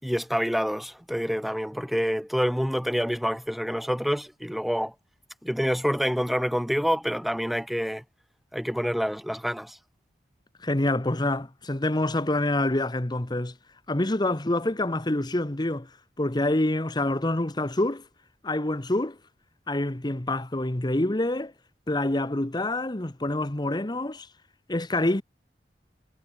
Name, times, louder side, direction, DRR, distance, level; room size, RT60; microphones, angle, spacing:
voice 1, 0.0-4.9 5.4-8.0 8.5-9.8, equal, ahead, 6.8 m, -27 dB
voice 2, 10.6-13.5 13.9-15.9 16.2-18.0 18.4-19.2 19.7-21.5 21.9-24.3 24.7-25.2, left 1 dB, 25° left, 1.1 m, -26 dB
head